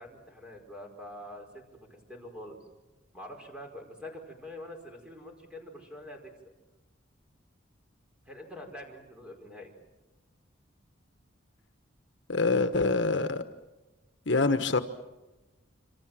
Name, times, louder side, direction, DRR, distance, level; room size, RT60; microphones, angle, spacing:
voice 1, 0.0-1.6 1.9-2.6 3.1-6.3 8.2-9.7, left 1 dB, 5° right, 2 dB, 5.1 m, -45 dB
voice 2, 12.3-13.4 14.3-14.8, left 3 dB, 65° left, 9 dB, 1.2 m, -25 dB
27.0 x 26.5 x 7.6 m, 1.1 s
head